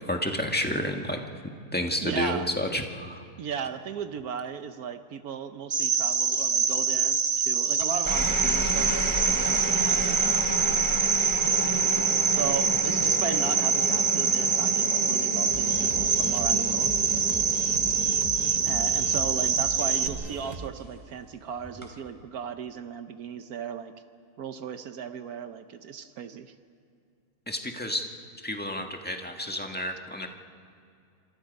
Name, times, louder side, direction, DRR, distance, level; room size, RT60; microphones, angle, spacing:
voice 1, 0.1-1.2 1.7-3.2 27.5-28.1 28.4-30.3, left 1 dB, 5° left, 3 dB, 1.5 m, -30 dB
voice 2, 2.0-2.5 3.4-10.3 12.3-16.9 18.6-23.9 24.4-26.5, right 7 dB, 70° right, 9 dB, 1.3 m, -36 dB
Cricket, 5.7-20.1, right 6 dB, 55° right, 1.5 m, -25 dB
sound 1, 7.8-20.4 21.6-22.1, equal, 10° right, 3.0 m, -33 dB
sound 2, 15.5-20.7, right 3 dB, 30° right, 0.9 m, -39 dB
28.0 x 25.5 x 5.3 m, 2.5 s
omnidirectional pair, 1.6 m